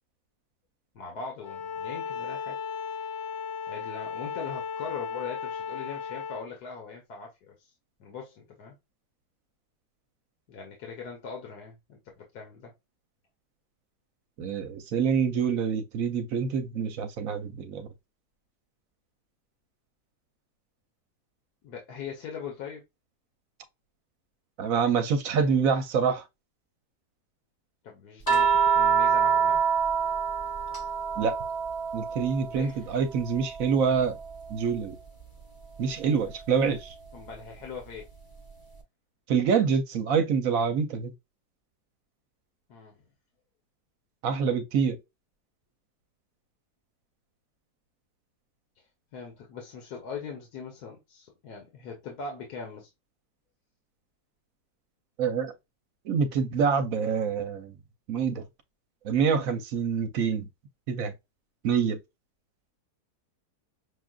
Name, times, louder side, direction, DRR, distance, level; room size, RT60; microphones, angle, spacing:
voice 1, 0.9-2.6 3.7-7.7 8.0-8.7 10.5-12.7 21.6-22.8 27.8-29.6 32.5-32.9 37.1-38.1 42.7-42.9 49.1-52.9, left 5 dB, 75° left, 1.6 m, -41 dB
Bowed string instrument, 1.4-6.5, left 6 dB, 55° left, 1.2 m, -35 dB
voice 2, 14.4-17.9 24.6-26.2 31.2-31.4 31.9-34.2 34.5-34.9 35.8-36.9 39.3-41.1 44.2-45.0 55.2-55.5 56.1-57.7 58.1-58.4 59.0-60.5 60.9-61.1 61.6-62.0, right 6 dB, 65° right, 1.0 m, -26 dB
sound 1, 28.3-32.7 33.1-34.7 36.3-36.4, right 6 dB, 15° left, 1.0 m, -26 dB
6.3 x 2.4 x 2.3 m
omnidirectional pair, 1.7 m